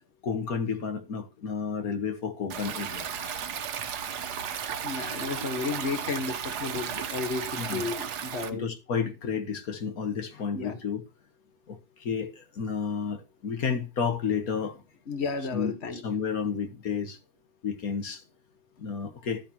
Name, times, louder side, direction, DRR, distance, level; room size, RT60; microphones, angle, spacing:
voice 1, 0.2-3.6 7.6-7.8 8.5-11.0 11.7-14.8 15.5-17.2 17.6-18.2 18.8-19.4, left 6 dB, 60° left, 1.9 m, -31 dB
Stream, 2.5-8.5, right 8 dB, 75° right, 1.5 m, -34 dB
voice 2, 4.8-8.7 10.5-10.8 15.1-16.2, left 4 dB, 40° left, 1.7 m, -33 dB
12.0 x 10.5 x 2.9 m
omnidirectional pair, 1.8 m